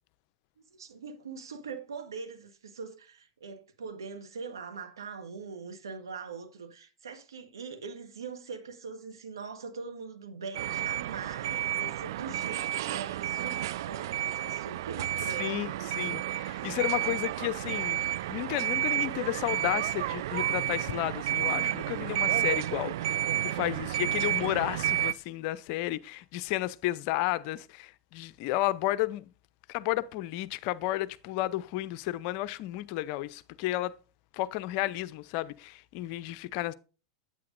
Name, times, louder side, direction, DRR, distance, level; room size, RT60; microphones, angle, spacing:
voice 1, 0.7-15.8, right 5 dB, 80° right, 1.3 m, -42 dB
sound 1, 10.6-25.1, right 13 dB, 65° right, 0.3 m, -31 dB
voice 2, 15.4-18.0 18.3-29.3 29.7-33.9 34.3-36.7, left 16 dB, 55° left, 0.5 m, -32 dB
8.8 x 8.4 x 2.5 m
hypercardioid pair, 90°, 2 cm